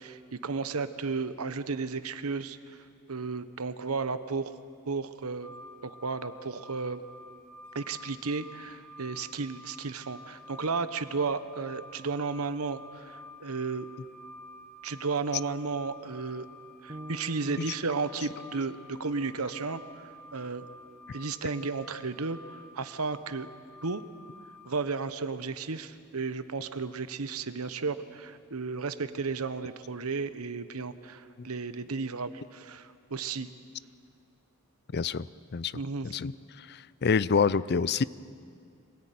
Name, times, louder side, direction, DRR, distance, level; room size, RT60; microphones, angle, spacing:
voice 1, 0.0-2.6 3.1-4.6 4.9-5.5 5.8-7.0 7.7-13.9 14.8-16.5 16.8-20.7 21.1-23.5 23.8-24.0 24.6-33.5 35.7-36.1, right 4 dB, 80° right, 12 dB, 1.1 m, -33 dB
sound 1, 5.4-24.8, left 1 dB, 5° left, 2.2 m, -50 dB
sound 2, 16.9-21.0, right 1 dB, 30° right, 1.0 m, -49 dB
voice 2, 34.9-35.3 35.5-35.7 36.0-36.3 36.6-38.0, left 5 dB, 50° left, 18 dB, 0.5 m, -27 dB
25.5 x 18.0 x 9.4 m, 2.2 s
head